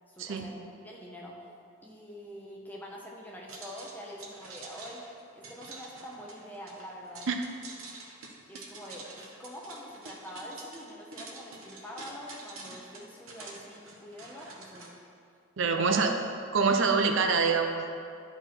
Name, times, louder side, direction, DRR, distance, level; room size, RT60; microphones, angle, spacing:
voice 1, 0.1-1.4 1.8-5.0 5.3-7.3 8.4-15.0 15.6-16.0, equal, 10° left, -3 dB, 0.9 m, -45 dB
sound 1, 3.5-14.9, right 3 dB, 90° right, 1.1 m, -47 dB
voice 2, 15.6-16.1 16.5-17.9, right 4 dB, 65° right, 5 dB, 0.5 m, -25 dB
11.0 x 4.3 x 4.5 m, 2.4 s
head